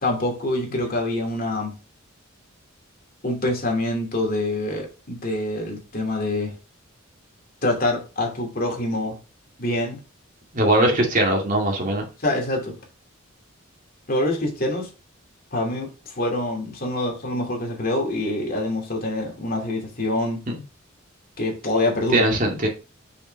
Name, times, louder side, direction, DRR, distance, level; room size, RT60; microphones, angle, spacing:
voice 1, 0.0-1.7 3.2-6.5 7.6-9.2 9.6-10.0 10.8-11.0 12.2-12.8 14.1-14.9 15.5-20.4 21.4-22.3, left 1 dB, 45° left, 2.6 m, -25 dB
voice 2, 10.5-12.0 22.1-22.7, right 1 dB, 40° right, 2.3 m, -20 dB
6.6 x 5.5 x 3.4 m
head